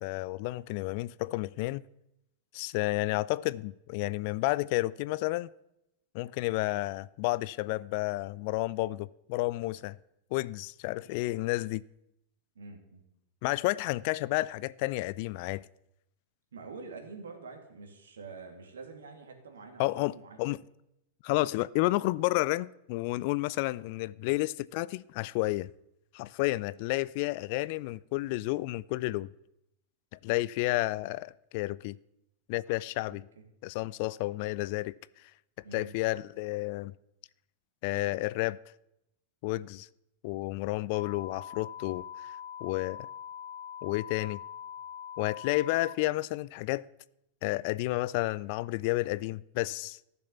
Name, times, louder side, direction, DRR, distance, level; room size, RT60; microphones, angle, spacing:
voice 1, 0.0-1.8 2.5-5.5 6.1-10.0 10.3-11.8 13.4-15.7 19.8-20.6 21.2-25.7 26.1-29.3 30.2-32.0 32.5-33.2 33.6-34.9 35.7-36.9 37.8-38.6 39.4-39.9 40.2-42.3 42.6-43.1 43.8-44.4 45.2-46.9 47.4-50.0, left 19 dB, 45° left, 0.3 m, -31 dB
voice 2, 12.5-13.0 16.5-20.4 21.3-21.4 33.1-33.4 35.6-35.9, right 4 dB, 65° right, 2.4 m, -46 dB
sound 1, 40.9-45.9, left 9 dB, 65° left, 1.8 m, -43 dB
14.5 x 6.9 x 7.1 m
figure-of-eight pair, 90°, 0 cm